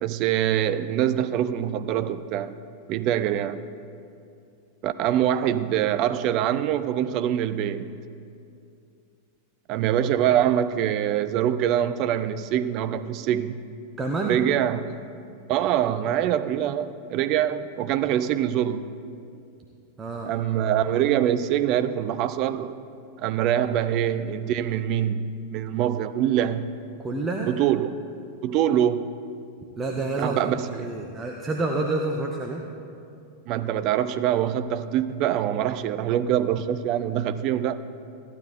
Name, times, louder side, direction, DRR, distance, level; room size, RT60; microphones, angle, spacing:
voice 1, 0.0-2.5 2.9-3.6 4.8-8.0 9.7-13.6 14.2-14.9 15.5-18.9 20.2-22.8 23.2-26.7 27.5-28.0 28.4-29.1 30.2-30.8 33.5-37.8, right 10 dB, 40° right, 0.5 m, -24 dB
voice 2, 14.0-14.4 20.0-20.3 27.0-27.5 29.8-30.3 30.7-32.6, right 2 dB, 20° right, 0.9 m, -28 dB
14.5 x 12.0 x 4.3 m
figure-of-eight pair, 90°, 0 cm